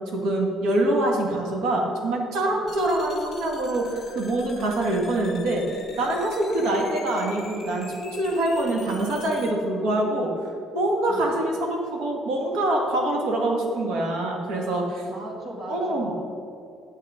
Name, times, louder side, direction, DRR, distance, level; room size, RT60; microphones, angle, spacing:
voice 1, 0.1-5.7 6.0-10.3 10.7-15.0 15.7-16.1, right 1 dB, 80° right, 0 dB, 1.9 m, -25 dB
sound 1, 2.7-9.5, left 5 dB, 30° left, 1.3 m, -44 dB
voice 2, 15.1-16.1, right 1 dB, 35° right, -1 dB, 2.1 m, -38 dB
8.9 x 7.3 x 5.1 m, 2.6 s
cardioid pair, 155°, 0 cm